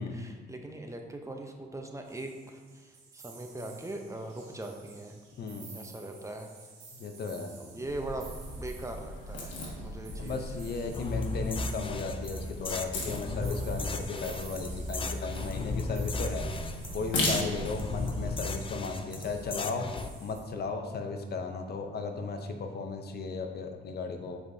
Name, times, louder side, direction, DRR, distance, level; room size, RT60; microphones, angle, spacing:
voice 1, 0.0-5.2 5.7-6.5 7.6-8.3 8.6-10.4, right 1 dB, 15° right, 3 dB, 0.7 m, -41 dB
sound 1, 2.0-20.4, right 4 dB, 85° right, 1.8 m, -53 dB
voice 2, 5.4-5.7 7.0-7.5 10.2-16.5 16.9-19.9 20.2-24.4, left 4 dB, 55° left, 5 dB, 0.7 m, -35 dB
sound 2, 7.8-18.3, left 1 dB, 70° left, 1.5 m, -37 dB
sound 3, 10.9-20.1, left 4 dB, 25° left, 0.4 m, -36 dB
7.5 x 4.8 x 2.8 m, 1.5 s
cardioid pair, 90°, 20 cm